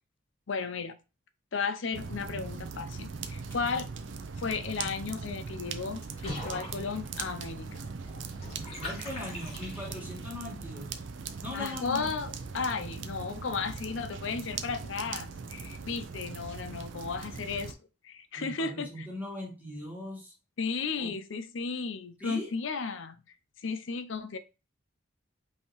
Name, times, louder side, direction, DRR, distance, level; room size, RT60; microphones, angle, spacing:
voice 1, 0.5-1.0 1.5-3.9 4.4-7.8 11.5-17.8 18.0-19.1 20.6-23.2 23.6-24.4, left 5 dB, 75° left, 0.5 m, -34 dB
sound 1, 1.9-17.7, right 5 dB, 70° right, 0.5 m, -40 dB
sound 2, 2.8-8.7, equal, 10° left, 1.9 m, -59 dB
Water / Bathtub (filling or washing), 6.2-10.3, left 1 dB, 30° left, 1.9 m, -43 dB
voice 2, 8.8-11.0 11.4-12.1 18.3-20.3 20.9-21.1 22.2-22.5, left 2 dB, 10° right, 1.6 m, -40 dB
5.5 x 2.8 x 3.1 m
head